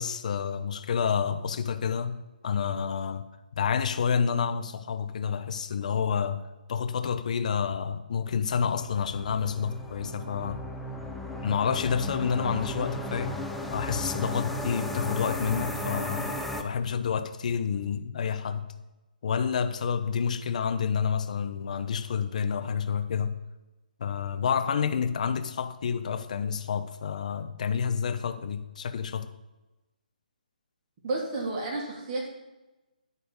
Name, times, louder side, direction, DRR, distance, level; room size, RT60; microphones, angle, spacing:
voice 1, 0.0-2.2 2.4-3.2 3.5-10.6 11.4-13.4 13.7-18.7 19.2-23.4 24.0-29.3, left 6 dB, 50° left, 0.7 m, -29 dB
sound 1, 8.8-16.6, left 1 dB, ahead, 0.4 m, -35 dB
voice 2, 31.0-32.3, right 2 dB, 30° right, 1.7 m, -31 dB
9.5 x 4.2 x 6.9 m
hypercardioid pair, 155°, 5 cm